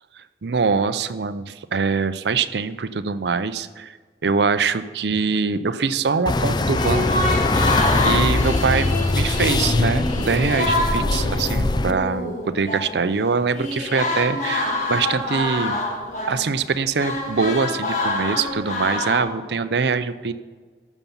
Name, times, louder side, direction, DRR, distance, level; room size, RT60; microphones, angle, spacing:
voice 1, 0.2-3.9 4.2-7.1 7.7-15.8 16.3-20.3, right 5 dB, 70° right, 13 dB, 0.6 m, -23 dB
sound 1, 6.3-11.9, left 2 dB, 25° left, 0.4 m, -21 dB
sound 2, 6.8-13.1 13.5-19.2, left 2 dB, 45° left, 1.7 m, -26 dB
12.5 x 7.2 x 5.5 m, 1.5 s
head